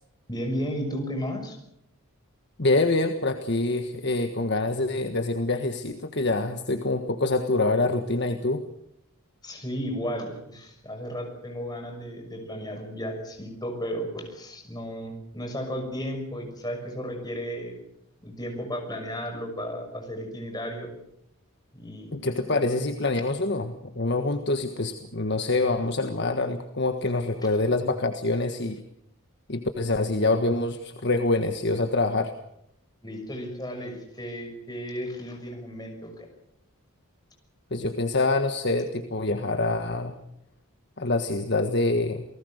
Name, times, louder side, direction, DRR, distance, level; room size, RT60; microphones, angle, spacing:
voice 1, 0.3-1.6 9.4-17.8 18.2-20.9 21.7-22.3 33.0-36.3, equal, 20° left, 3 dB, 6.4 m, -34 dB
voice 2, 2.6-8.6 22.1-28.8 29.5-32.3 37.7-40.2 41.0-42.2, left 2 dB, 50° left, 7 dB, 1.5 m, -25 dB
29.0 x 19.0 x 6.6 m, 0.76 s
head